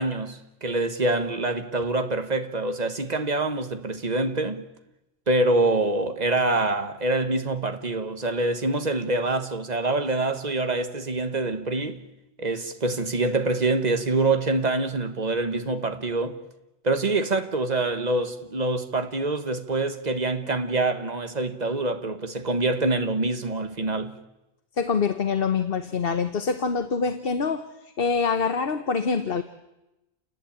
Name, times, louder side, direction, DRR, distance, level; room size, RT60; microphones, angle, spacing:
voice 1, 0.0-4.6 5.3-12.0 12.4-16.4 16.8-24.1, right 2 dB, 40° right, 1.7 m, -25 dB
voice 2, 24.8-29.4, left 5 dB, 60° left, 1.3 m, -25 dB
29.5 x 19.5 x 8.8 m
omnidirectional pair, 1.1 m